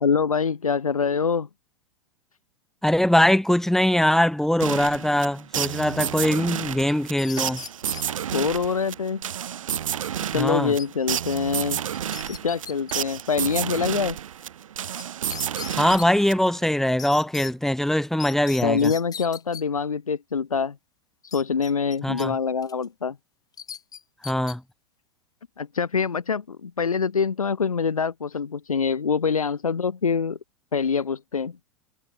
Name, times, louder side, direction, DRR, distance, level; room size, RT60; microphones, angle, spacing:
voice 1, 0.0-1.5 8.3-9.2 10.3-11.8 12.3-14.2 18.6-20.8 21.3-23.2 25.6-30.4 30.7-31.5, left 5 dB, 90° left, 0.9 m, -25 dB
voice 2, 2.8-7.6 10.3-10.7 15.7-18.9 22.0-22.4 24.2-24.6, left 1 dB, ahead, 1.2 m, -22 dB
sound 1, 4.6-16.7, right 10 dB, 70° right, 2.1 m, -31 dB
sound 2, 6.9-8.1 10.8-11.2 11.5-11.6 11.9-12.9 15.0-15.1 15.3-16.1 17.0-17.5 18.2-19.6 21.3-22.3 22.6-22.9 23.6-24.6, left 7 dB, 20° left, 3.9 m, -38 dB
figure-of-eight pair, 100°, 17 cm